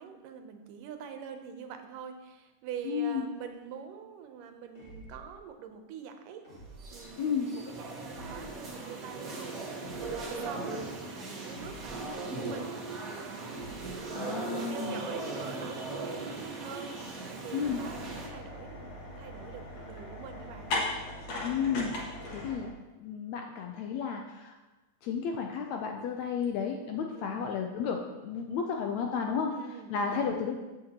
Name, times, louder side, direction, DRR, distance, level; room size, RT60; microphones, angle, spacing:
voice 1, 0.0-6.4 6.9-17.0 17.4-20.7 27.1-27.4 29.5-29.9, right 7 dB, 85° right, 6 dB, 2.4 m, -45 dB
voice 2, 2.8-3.2 7.2-7.5 14.1-15.1 17.5-17.8 21.4-22.7 23.0-24.6 25.0-29.5 29.9-30.5, left 6 dB, 80° left, 3 dB, 1.6 m, -32 dB
sound 1, 4.7-5.4 6.4-7.1 8.0-8.7 9.8-10.4 11.5-12.2 13.5-14.1, right 2 dB, 25° left, 1.5 m, -50 dB
sound 2, 6.8-18.3, right 3 dB, 55° right, 0.9 m, -38 dB
sound 3, 17.6-22.7, left 2 dB, 55° left, 2.6 m, -38 dB
14.5 x 6.5 x 2.9 m, 1.1 s
omnidirectional pair, 3.7 m